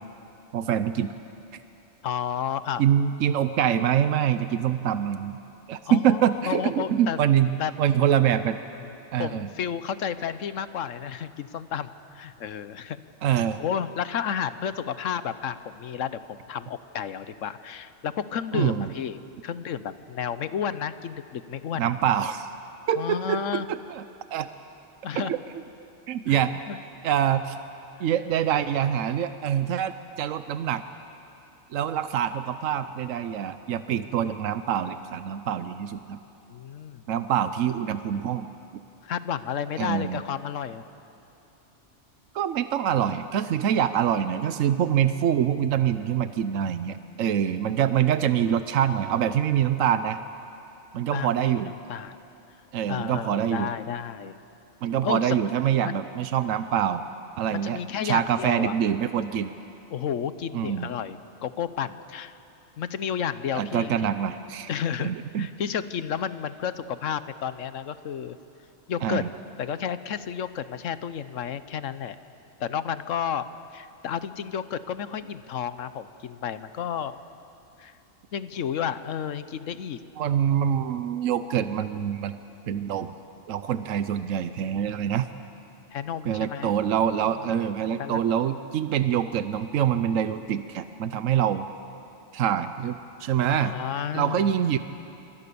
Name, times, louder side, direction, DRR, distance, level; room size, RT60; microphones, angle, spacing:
voice 1, 0.5-1.1 2.8-5.4 5.7-8.6 9.1-9.5 13.2-13.6 18.5-18.9 21.8-22.5 22.9-24.0 24.3-24.5 25.2-25.4 26.1-26.6 27.0-27.6 28.0-30.8 31.7-36.2 37.1-38.5 39.8-40.2 42.3-50.2 50.9-51.7 52.7-53.7 54.8-57.0 57.4-57.8 58.0-59.5 60.5-60.9 63.5-64.7 65.0-65.5 69.0-69.3 80.2-82.4 82.7-83.1 83.5-85.3 86.2-91.7 92.3-93.7 94.1-94.8, right 9 dB, 85° right, 11 dB, 1.1 m, -25 dB
voice 2, 2.0-2.8 5.8-7.2 7.6-7.7 8.8-8.9 9.2-13.0 13.3-21.9 23.0-23.7 25.0-25.3 26.3-26.8 36.5-37.0 39.0-40.8 51.1-51.5 51.9-52.2 52.9-54.4 55.0-55.4 55.8-56.0 57.5-58.7 59.9-62.3 62.8-64.0 64.7-68.4 68.9-69.2 69.6-72.2 72.6-73.5 73.7-77.2 77.8-77.9 78.3-80.0 85.9-86.7 88.0-88.6 93.5-94.5, left 8 dB, 80° left, 13 dB, 1.2 m, -31 dB
27.0 x 24.0 x 6.9 m, 2.9 s
omnidirectional pair, 1.3 m